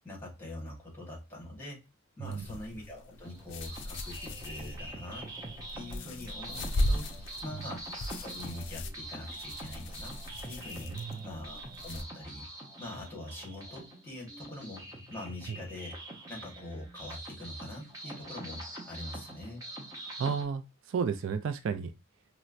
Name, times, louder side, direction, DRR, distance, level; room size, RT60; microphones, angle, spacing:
voice 1, 0.0-1.8 2.2-5.3 5.7-7.8 8.2-10.1 10.4-10.9 11.2-12.5 12.8-16.0 16.3-19.7, left 1 dB, 10° left, 1.2 m, -43 dB
sound 1, 2.2-12.0, left 1 dB, 55° left, 0.4 m, -38 dB
sound 2, 3.2-20.4, right 1 dB, 15° right, 0.6 m, -44 dB
voice 2, 10.9-11.2 15.5-15.6 20.2-21.9, right 6 dB, 60° right, 0.3 m, -33 dB
4.2 x 2.1 x 2.4 m
head